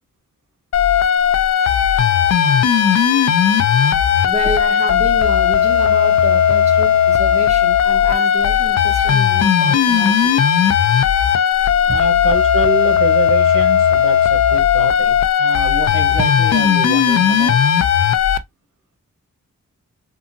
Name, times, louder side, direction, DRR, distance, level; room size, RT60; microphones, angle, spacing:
sound 1, 0.7-18.4, left 8 dB, 55° left, 0.4 m, -15 dB
voice 1, 3.9-10.5 11.9-12.0, right 2 dB, 20° right, 0.5 m, -29 dB
voice 2, 11.9-17.6, right 5 dB, 85° right, 1.1 m, -25 dB
2.7 x 2.4 x 2.5 m
cardioid pair, 70°, 32 cm